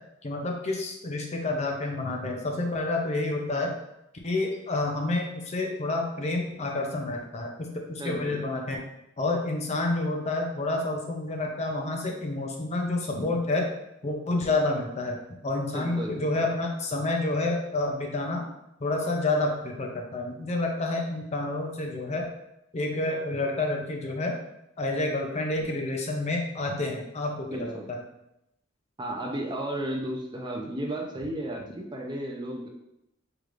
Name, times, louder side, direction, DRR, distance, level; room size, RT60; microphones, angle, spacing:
voice 1, 0.2-3.7 4.2-8.8 9.2-13.7 14.0-15.2 15.4-18.4 18.8-22.3 22.7-24.4 24.8-27.7, left 2 dB, 35° left, 1 dB, 0.5 m, -29 dB
voice 2, 8.0-8.4 15.7-16.5 27.5-27.9 29.0-32.7, right 1 dB, 25° right, 1 dB, 0.5 m, -34 dB
4.7 x 3.2 x 2.5 m, 0.85 s
head